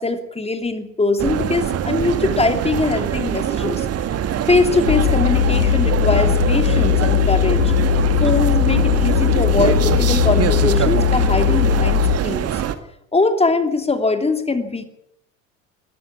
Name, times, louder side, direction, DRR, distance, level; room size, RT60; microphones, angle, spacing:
voice 1, 0.0-3.9 4.5-7.7 8.2-12.5 13.1-14.8, left 3 dB, 15° left, 8 dB, 2.9 m, -21 dB
sound 1, 1.2-12.7, right 9 dB, 40° right, 1.8 m, -23 dB
sound 2, 4.9-12.2, left 12 dB, 70° left, 1.1 m, -18 dB
21.0 x 14.0 x 9.8 m, 0.77 s
figure-of-eight pair, 60°, 40 cm